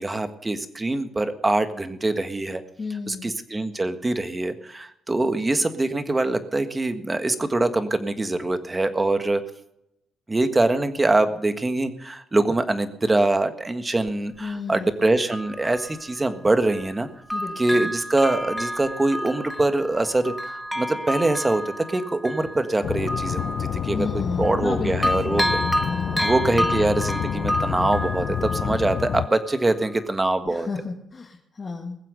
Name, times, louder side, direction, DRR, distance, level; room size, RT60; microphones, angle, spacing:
voice 1, 0.0-2.6 3.1-9.4 10.3-17.1 17.6-24.1 24.4-25.6 26.2-30.7, right 2 dB, 20° right, 9 dB, 1.6 m, -24 dB
voice 2, 2.8-3.3 14.4-14.9 17.3-17.9 23.9-26.2 26.6-26.7 30.4-32.0, left 4 dB, 35° left, 0 dB, 1.8 m, -32 dB
Bell, 14.1-14.2 15.0-17.0 17.3-24.7 25.0-29.6 30.1-30.2, equal, ahead, 0.9 m, -30 dB
sound 1, 22.8-29.3, left 9 dB, 65° left, 0.5 m, -28 dB
20.5 x 7.6 x 6.7 m, 0.80 s
cardioid pair, 90°, 0 cm